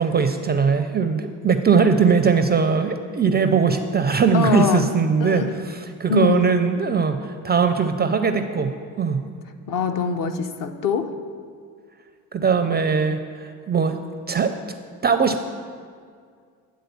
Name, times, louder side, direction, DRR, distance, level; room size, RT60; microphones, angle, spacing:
voice 1, 0.0-5.4 6.0-8.7 9.0-9.2 12.3-14.0 14.3-14.6 15.0-15.4, right 5 dB, 25° right, 8 dB, 0.4 m, -20 dB
voice 2, 4.3-4.9 5.2-5.5 6.1-6.5 9.7-11.2, left 5 dB, 45° left, 6 dB, 0.7 m, -23 dB
9.3 x 3.8 x 6.9 m, 2.1 s
hypercardioid pair, 65°, 44 cm